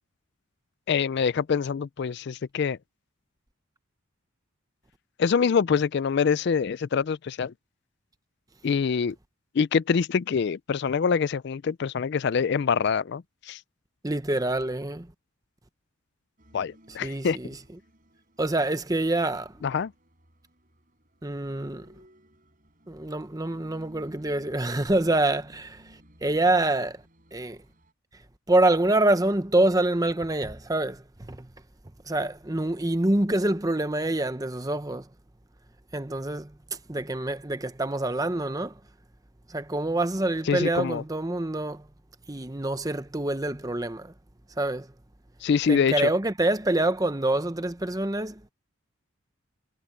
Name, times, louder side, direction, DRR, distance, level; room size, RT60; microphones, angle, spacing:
voice 1, 0.9-2.8 5.2-7.5 8.6-9.2 9.5-13.6 16.5-17.4 19.6-19.9 40.5-41.0 45.4-46.1, left 6 dB, 55° left, 0.4 m, -25 dB
voice 2, 14.0-15.1 17.0-17.6 18.4-19.5 21.2-21.9 22.9-25.8 26.2-27.0 27.3-27.6 28.5-31.5 32.1-35.1 35.9-36.5 36.9-38.8 39.5-41.8 42.3-44.1 44.6-44.9 45.7-48.5, right 2 dB, 15° right, 0.9 m, -26 dB
sound 1, 16.4-27.9, equal, 40° right, 4.6 m, -57 dB
head